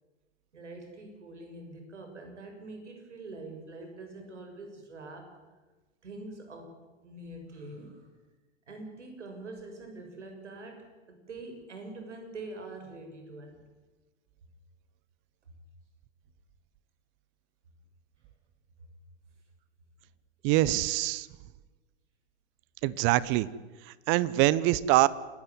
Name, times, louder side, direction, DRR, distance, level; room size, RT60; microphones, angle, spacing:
voice 1, 0.5-5.3 6.0-6.8 7.0-8.1 8.7-13.6, right 2 dB, 75° right, 4 dB, 6.8 m, -44 dB
voice 2, 20.4-21.3 22.8-23.5 24.1-25.1, right 17 dB, 35° right, 20 dB, 0.9 m, -24 dB
28.0 x 13.5 x 9.7 m, 1.2 s
figure-of-eight pair, 105°, 36 cm